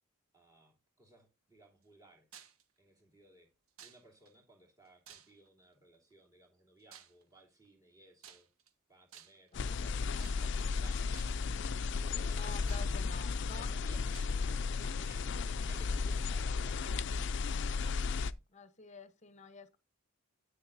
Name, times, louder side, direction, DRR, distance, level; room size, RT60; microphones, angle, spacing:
voice 1, 0.3-2.3 2.8-3.5 3.8-8.5 8.9-12.8 13.5-17.1, right 1 dB, 15° right, 2.9 m, -60 dB
sound 1, 2.3-2.6 3.8-4.3 5.1-5.6 6.9-7.2 8.2-8.7 9.1-9.5 10.2-10.7 11.1-11.5 12.2-12.3 12.7-13.4 14.1-14.4, right 8 dB, 70° right, 1.3 m, -55 dB
sound 2, 9.5-18.3, left 4 dB, 55° left, 0.4 m, -34 dB
voice 2, 9.5-9.8 12.3-13.7 18.5-19.8, left 4 dB, 30° left, 0.9 m, -50 dB
10.0 x 8.8 x 2.6 m
head